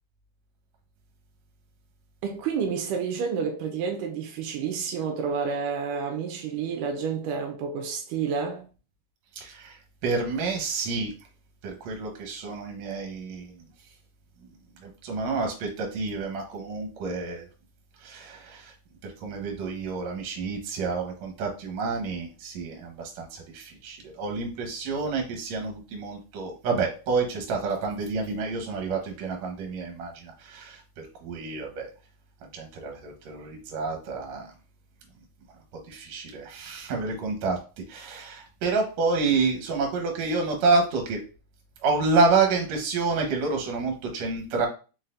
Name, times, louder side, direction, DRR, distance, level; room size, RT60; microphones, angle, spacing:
voice 1, 2.2-8.7, right 6 dB, 85° right, 2.3 m, -29 dB
voice 2, 9.3-11.1 11.6-13.7 14.8-17.5 18.0-18.7 19.0-31.9 32.5-34.5 35.9-37.6 37.9-41.2 41.8-44.7, right 4 dB, 65° right, 2.2 m, -28 dB
5.0 x 4.1 x 2.5 m
omnidirectional pair, 3.6 m